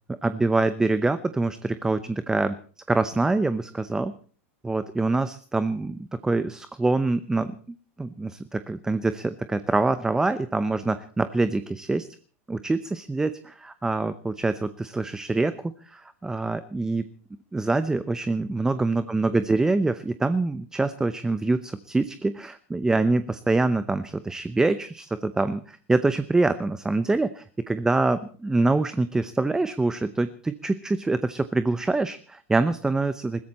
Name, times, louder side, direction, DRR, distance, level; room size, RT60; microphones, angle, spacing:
voice 1, 0.2-2.6 2.9-4.1 4.6-7.5 8.0-12.1 12.5-17.0 17.5-33.4, right 3 dB, 10° right, 13 dB, 0.7 m, -25 dB
21.0 x 15.5 x 4.2 m, 0.41 s
supercardioid pair, 140°, 7 cm